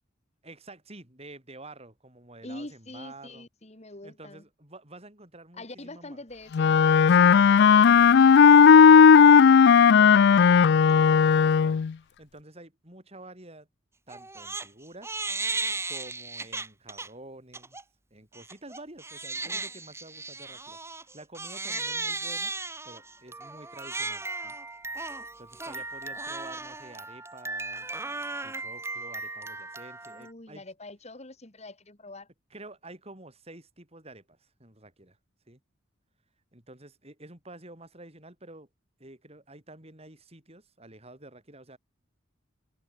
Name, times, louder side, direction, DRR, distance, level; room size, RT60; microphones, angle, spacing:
voice 1, 0.4-3.5 4.0-6.2 7.1-9.6 10.0-13.7 14.1-15.2 15.9-17.8 18.1-22.5 22.8-24.6 25.4-28.0 28.4-30.6 32.5-35.2 35.5-35.6 36.5-38.7 39.0-41.8, right 2 dB, 30° right, 5.5 m, -49 dB
voice 2, 2.4-4.4 5.5-6.8 30.1-32.3, left 2 dB, 35° left, 2.5 m, -44 dB
Wind instrument woodwind instrument, 6.5-11.9, left 6 dB, 55° left, 0.4 m, -16 dB
Crying sobbing, 14.1-14.7 15.0-17.1 17.5-17.8 18.3-30.3, right 3 dB, 15° right, 2.7 m, -36 dB
head